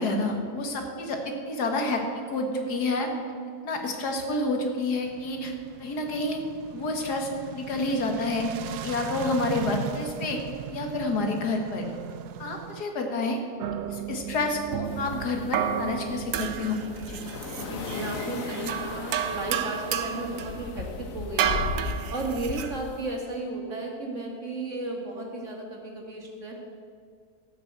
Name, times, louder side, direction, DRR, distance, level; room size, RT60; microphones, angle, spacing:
voice 1, 0.0-2.0 2.3-3.1 3.6-5.5 5.8-6.4 6.7-8.5 8.8-10.4 10.7-11.8 12.4-13.4 13.9-16.8 17.1-17.2, left 2 dB, 80° left, 3 dB, 2.1 m, -29 dB
sound 1, 5.0-12.8, right 10 dB, 80° right, 1.2 m, -39 dB
sound 2, 13.6-22.8, right 9 dB, 65° right, 1.0 m, -32 dB
sound 3, 14.8-23.2, left 5 dB, 60° left, 1.3 m, -37 dB
voice 2, 17.5-21.6 22.1-26.5, right 2 dB, 50° right, 0 dB, 2.5 m, -34 dB
14.0 x 6.6 x 8.1 m, 2.2 s
omnidirectional pair, 1.7 m